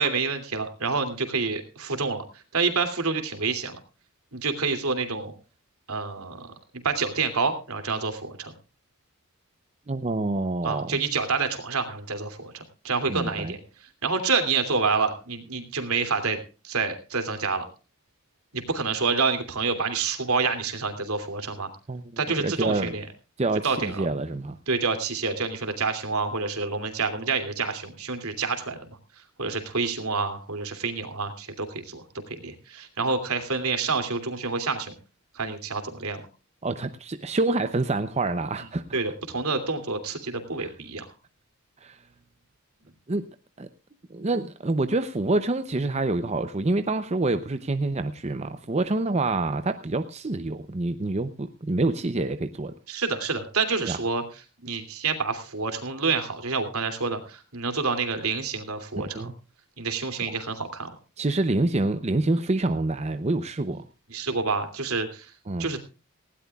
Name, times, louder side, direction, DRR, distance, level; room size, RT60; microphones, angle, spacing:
voice 1, 0.0-2.2 2.5-3.8 4.3-5.3 5.9-6.4 6.8-8.5 10.6-13.6 14.0-16.4 16.6-17.6 18.5-21.7 22.2-23.1 23.6-24.1 24.7-28.9 29.4-34.9 35.3-36.2 38.9-41.1 52.9-54.2 54.6-59.3 59.8-60.9 64.1-65.3 65.6-65.8, right 4 dB, 75° right, 7 dB, 2.8 m, -28 dB
voice 2, 9.9-11.0 13.1-13.5 21.9-22.0 22.4-22.9 23.4-24.6 36.6-39.0 40.6-40.7 41.8-42.0 43.1-43.2 43.6-43.7 44.1-52.7 53.8-54.0 59.0-59.3 60.3-60.4 61.2-63.8 65.5-65.7, right 2 dB, 30° right, 9 dB, 0.6 m, -27 dB
19.0 x 16.5 x 2.4 m, 0.33 s
head